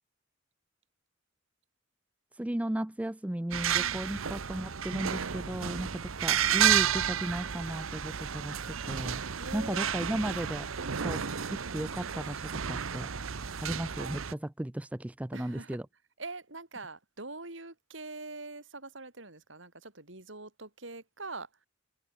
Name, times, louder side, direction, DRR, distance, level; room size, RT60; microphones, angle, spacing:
voice 1, 2.3-9.2 9.5-10.7 11.0-11.2 11.5-13.1 13.6-15.9, right 1 dB, 5° right, 0.4 m, -35 dB
sound 1, 3.5-14.3, right 8 dB, 85° right, 0.9 m, -31 dB
voice 2, 3.8-4.1 5.7-6.0 9.4-10.2 10.8-11.0 15.3-15.8 16.2-21.7, right 3 dB, 65° right, 4.4 m, -44 dB
head